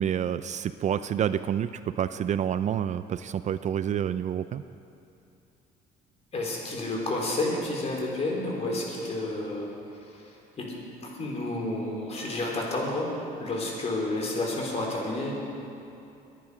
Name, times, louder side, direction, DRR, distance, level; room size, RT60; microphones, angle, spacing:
voice 1, 0.0-4.6, right 9 dB, 45° right, 13 dB, 0.4 m, -28 dB
voice 2, 6.3-9.7 10.1-10.2 10.6-10.8 11.0-13.1 13.4-15.3, left 2 dB, 40° left, -1 dB, 3.9 m, -30 dB
21.5 x 10.5 x 5.0 m, 2.7 s
cardioid pair, 110°, 17 cm